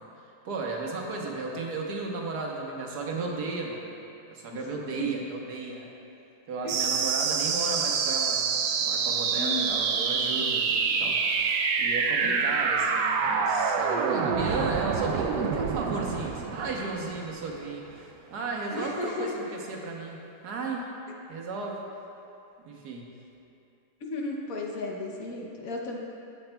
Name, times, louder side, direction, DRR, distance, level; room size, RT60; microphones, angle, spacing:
voice 1, 0.4-3.9 4.3-5.9 6.5-20.9 21.3-21.8 22.6-23.1, right 3 dB, 70° right, -1 dB, 1.5 m, -34 dB
sound 1, 6.7-17.7, right 5 dB, 90° right, 1.2 m, -27 dB
voice 2, 9.4-9.8 12.2-12.5 18.7-19.4 24.1-26.0, left 2 dB, 65° left, -1 dB, 1.1 m, -34 dB
11.5 x 7.8 x 2.2 m, 2.7 s
omnidirectional pair, 1.8 m